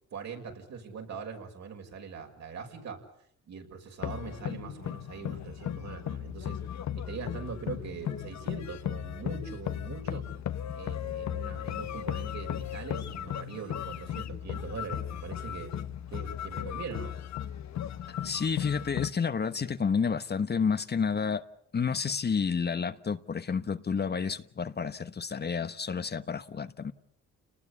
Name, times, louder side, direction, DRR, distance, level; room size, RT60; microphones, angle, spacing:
voice 1, 0.1-3.0 3.5-6.6 6.9-10.3 10.7-15.7 16.1-17.2, right 5 dB, 60° right, 6.4 m, -42 dB
sound 1, 4.0-19.1, left 10 dB, 65° left, 1.3 m, -36 dB
voice 2, 18.1-21.4 21.7-26.9, left 6 dB, 35° left, 1.2 m, -30 dB
29.5 x 20.0 x 8.4 m
cardioid pair, 90°, 30 cm